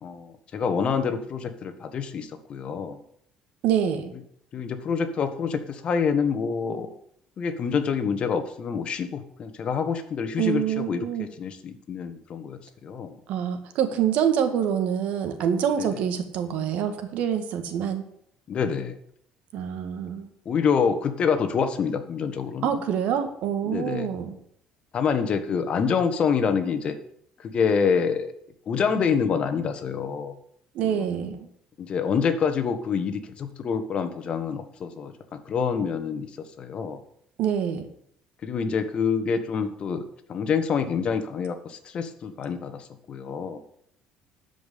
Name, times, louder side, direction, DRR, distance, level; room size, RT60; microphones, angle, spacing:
voice 1, 0.0-3.0 4.5-6.9 7.4-13.2 15.8-15.9 18.5-18.9 20.4-22.7 23.6-24.1 24.9-26.9 27.4-28.3 28.7-30.4 30.8-31.0 31.8-36.3 36.6-37.0 38.4-40.0 40.3-43.6, left 6 dB, 45° left, 9 dB, 1.5 m, -27 dB
voice 2, 3.6-4.1 10.4-11.3 13.3-18.0 19.5-20.3 22.6-24.3 30.7-31.5 37.4-37.9, right 8 dB, 70° right, 8 dB, 1.8 m, -26 dB
12.0 x 5.5 x 8.4 m, 0.68 s
cardioid pair, 120°, 2 cm